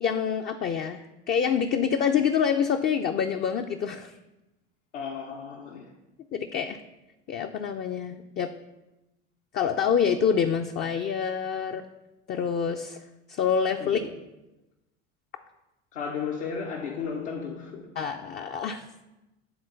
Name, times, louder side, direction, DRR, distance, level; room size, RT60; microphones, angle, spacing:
voice 1, 0.0-4.1 6.3-6.8 7.3-8.5 9.5-11.8 12.3-13.0 13.3-14.0 18.0-19.0, left 7 dB, 30° left, 0.4 m, -26 dB
voice 2, 4.9-5.9 13.8-13.9 15.9-17.9, left 6 dB, 80° left, 1.1 m, -34 dB
8.7 x 3.7 x 3.9 m
hypercardioid pair, 80°, 35 cm